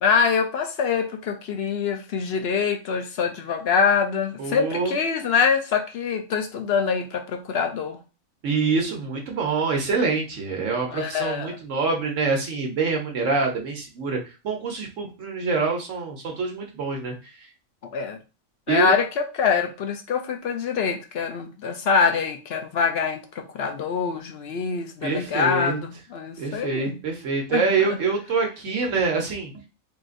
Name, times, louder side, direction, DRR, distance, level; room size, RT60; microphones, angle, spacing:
voice 1, 0.0-8.0 10.9-11.6 17.8-18.2 18.7-27.0 27.5-27.7, left 6 dB, 60° left, 0.7 m, -24 dB
voice 2, 4.4-4.9 8.4-14.2 14.4-17.3 18.7-18.9 25.0-25.8 26.4-29.7, right 4 dB, 70° right, 1.2 m, -25 dB
3.8 x 3.8 x 2.5 m
omnidirectional pair, 1.4 m